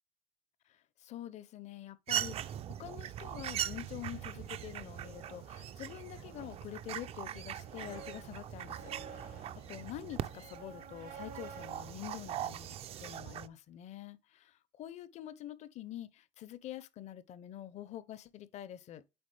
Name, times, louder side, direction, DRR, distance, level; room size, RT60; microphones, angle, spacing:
voice 1, 0.7-12.7 13.0-19.0, left 12 dB, 55° left, 0.6 m, -46 dB
sound 1, 2.1-13.5, right 10 dB, 45° right, 0.4 m, -41 dB
sound 2, 3.1-11.7, left 7 dB, 80° left, 1.0 m, -61 dB
sound 3, 3.2-13.2, right 7 dB, 75° right, 1.2 m, -53 dB
8.7 x 3.9 x 3.2 m
cardioid pair, 130°, 14 cm